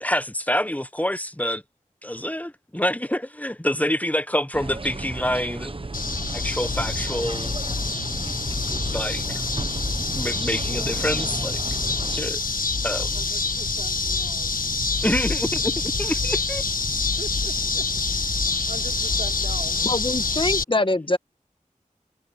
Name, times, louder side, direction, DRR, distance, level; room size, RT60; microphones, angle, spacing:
voice 1, 0.0-1.6 2.0-5.7 6.3-7.5 8.9-9.4 10.1-11.6 12.1-12.4 12.8-13.2 15.0-15.7 16.0-16.6 16.9-17.2, left 1 dB, 10° left, 0.9 m, -27 dB
sound 1, 4.5-12.2, right 3 dB, 40° right, 0.9 m, -34 dB
sound 2, 5.9-20.6, left 4 dB, 90° left, 1.4 m, -26 dB
voice 2, 13.0-14.6 17.2-19.9, right 3 dB, 85° right, 3.2 m, -41 dB
voice 3, 19.8-21.2, left 2 dB, 35° left, 1.5 m, -23 dB
wide cardioid pair, 55°, 14 cm